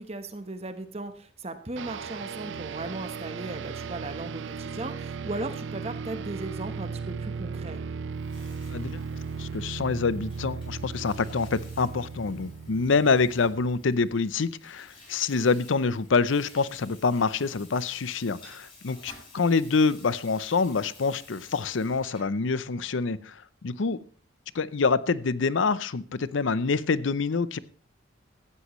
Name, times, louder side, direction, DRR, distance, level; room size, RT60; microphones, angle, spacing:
voice 1, 0.0-7.8, right 2 dB, 30° right, 8 dB, 1.1 m, -37 dB
sound 1, 1.8-14.0, right 5 dB, 70° right, 0.5 m, -36 dB
Water tap faucet / Sink (filling or washing), 8.1-22.4, left 2 dB, 25° left, 7.7 m, -53 dB
voice 2, 8.7-9.0 9.4-24.0 24.5-27.6, left 4 dB, 80° left, 17 dB, 0.6 m, -26 dB
16.0 x 13.5 x 3.1 m, 0.43 s
head